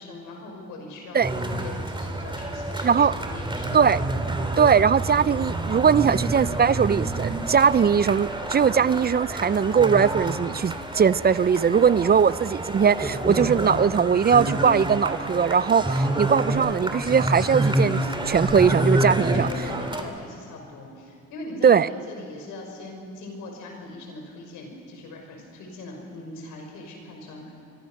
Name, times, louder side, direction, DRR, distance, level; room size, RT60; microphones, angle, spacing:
voice 1, 0.0-3.8 11.7-12.2 18.8-27.5, left 2 dB, 90° left, 1 dB, 6.1 m, -40 dB
sound 1, 1.2-20.0, right 1 dB, 15° right, 2.7 m, -28 dB
voice 2, 2.8-3.1 3.7-4.0 4.6-19.5 21.6-21.9, right 7 dB, 35° right, 18 dB, 0.5 m, -20 dB
25.5 x 23.5 x 6.5 m, 2.2 s
cardioid pair, 90°, 30 cm